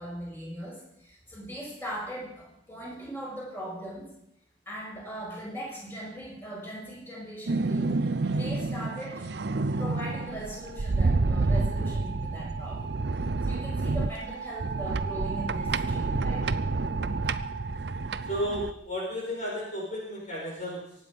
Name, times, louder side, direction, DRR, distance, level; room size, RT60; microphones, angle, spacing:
voice 1, 0.0-4.1 4.7-9.3 9.8-12.9 13.4-16.5, equal, 10° left, -4 dB, 6.2 m, -39 dB
sound 1, 7.5-18.7, right 3 dB, 60° right, 0.6 m, -29 dB
voice 2, 17.1-17.4 18.2-20.9, equal, 40° left, -3 dB, 4.7 m, -33 dB
24.0 x 9.4 x 5.3 m, 0.75 s
head